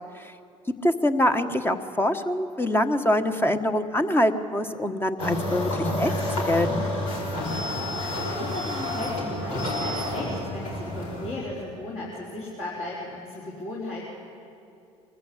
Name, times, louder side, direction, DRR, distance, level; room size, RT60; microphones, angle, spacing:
voice 1, 0.8-6.1 6.4-6.7, left 1 dB, 15° left, 7 dB, 1.4 m, -24 dB
sound 1, 5.2-11.3, left 1 dB, 80° left, 5.2 m, -29 dB
voice 2, 7.8-14.0, left 2 dB, 45° left, -7 dB, 4.8 m, -36 dB
23.5 x 14.5 x 8.8 m, 2.6 s
hypercardioid pair, 75°, 17 cm